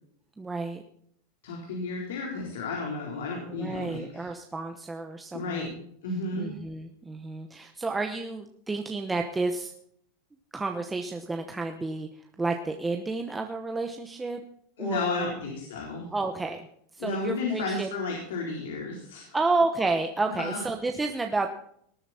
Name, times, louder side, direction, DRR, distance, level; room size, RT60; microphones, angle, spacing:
voice 1, 0.4-0.8 3.5-5.7 6.3-9.7 10.5-12.1 12.4-14.4 14.8-15.3 16.1-16.7 16.9-17.9 19.3-21.5, right 3 dB, 10° right, 4 dB, 1.0 m, -30 dB
voice 2, 1.4-4.3 5.3-5.7 6.0-6.5 14.8-16.1 17.0-19.2 20.4-20.6, left 3 dB, 90° left, -1 dB, 4.1 m, -32 dB
19.5 x 9.2 x 4.3 m, 0.67 s
supercardioid pair, 140°, 0 cm